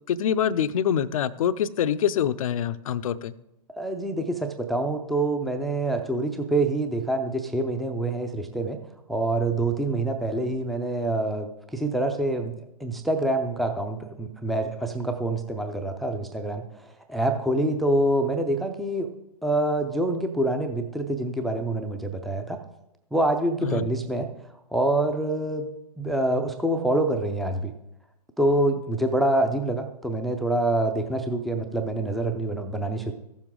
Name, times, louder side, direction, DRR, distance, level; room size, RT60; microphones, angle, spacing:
voice 1, 0.1-3.3 23.6-23.8, left 9 dB, 55° left, 15 dB, 0.5 m, -25 dB
voice 2, 3.8-8.8 9.1-12.5 12.8-19.1 19.4-22.6 23.1-24.3 24.7-25.7 26.0-27.7 28.4-33.1, right 1 dB, ahead, 5 dB, 0.5 m, -26 dB
14.5 x 7.1 x 3.7 m, 0.83 s
figure-of-eight pair, 120°, 21 cm